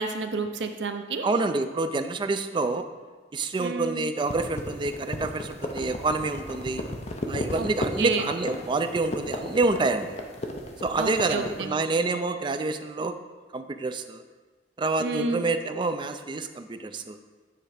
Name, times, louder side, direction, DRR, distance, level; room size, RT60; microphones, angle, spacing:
voice 1, 0.0-1.3 3.6-4.0 7.6-7.7 8.0-8.3 11.0-11.7 15.0-15.4, right 4 dB, 80° right, 7 dB, 0.6 m, -30 dB
voice 2, 1.2-2.9 3.3-6.8 7.3-10.1 10.8-13.2 13.5-14.2 14.8-17.2, right 3 dB, 25° right, 9 dB, 0.3 m, -27 dB
sound 1, 4.2-11.6, left 1 dB, 40° left, 0.7 m, -34 dB
8.6 x 3.3 x 4.9 m, 1.3 s
head